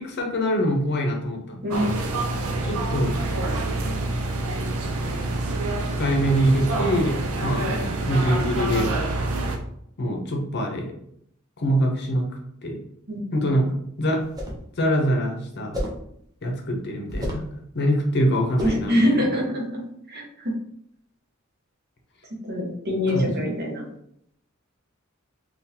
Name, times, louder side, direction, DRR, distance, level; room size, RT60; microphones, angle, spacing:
voice 1, 0.0-1.8 2.6-3.1 6.0-7.6 8.1-8.9 10.0-10.9 11.6-12.3 12.6-12.8 13.3-13.7 14.0-14.2 14.8-15.8 16.4-17.5 17.7-19.1 23.1-23.5, equal, 55° left, 2 dB, 0.7 m, -24 dB
voice 2, 1.6-2.0 7.7-7.8 13.1-13.4 18.6-19.7 20.1-20.5 22.5-23.9, left 1 dB, 50° right, -1 dB, 0.9 m, -24 dB
sound 1, 1.7-9.6, right 2 dB, 85° right, 0.5 m, -27 dB
sound 2, 14.2-14.7 15.7-16.1 17.1-17.5 18.6-18.9, equal, 20° right, 0.6 m, -30 dB
3.8 x 2.4 x 2.8 m, 0.71 s
head